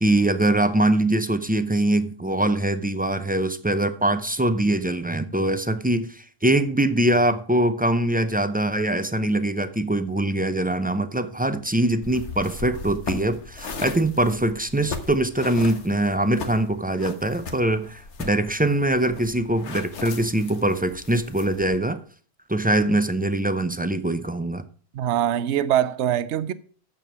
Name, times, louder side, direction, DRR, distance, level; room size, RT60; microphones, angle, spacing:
voice 1, 0.0-22.0 22.5-24.6, right 1 dB, 15° right, 0.4 m, -23 dB
sound 1, 12.0-21.8, left 4 dB, 85° left, 1.5 m, -38 dB
voice 2, 24.9-26.5, right 11 dB, 80° right, 0.9 m, -23 dB
9.0 x 7.1 x 6.0 m
omnidirectional pair, 1.2 m